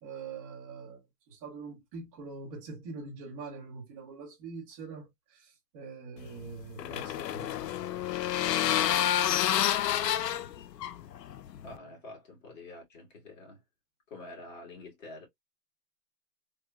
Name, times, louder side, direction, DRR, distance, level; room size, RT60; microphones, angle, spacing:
voice 1, 0.0-7.5 9.5-9.6, right 4 dB, 20° right, 0.9 m, -44 dB
sound 1, 6.2-11.8, left 11 dB, 85° left, 0.6 m, -29 dB
voice 2, 11.6-13.6 14.1-15.3, left 2 dB, 50° left, 1.9 m, -47 dB
3.4 x 2.7 x 2.2 m
hypercardioid pair, 160°, 48 cm